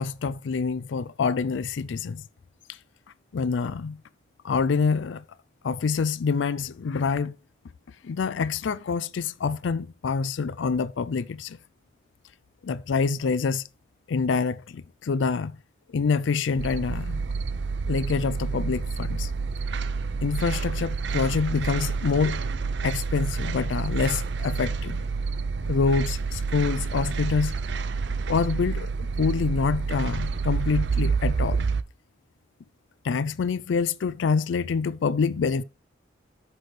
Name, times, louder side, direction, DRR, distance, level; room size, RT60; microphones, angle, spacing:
voice 1, 0.0-2.2 3.3-4.0 4.4-5.2 5.6-7.3 8.0-11.6 12.6-13.6 14.1-15.5 15.9-17.2 17.9-19.3 20.2-22.4 22.8-25.0 25.7-27.6 28.3-28.9 29.2-31.7 33.0-35.6, left 5 dB, 80° left, 0.4 m, -26 dB
sound 1, 16.6-31.8, right 4 dB, 65° right, 0.5 m, -28 dB
11.5 x 6.1 x 3.2 m
head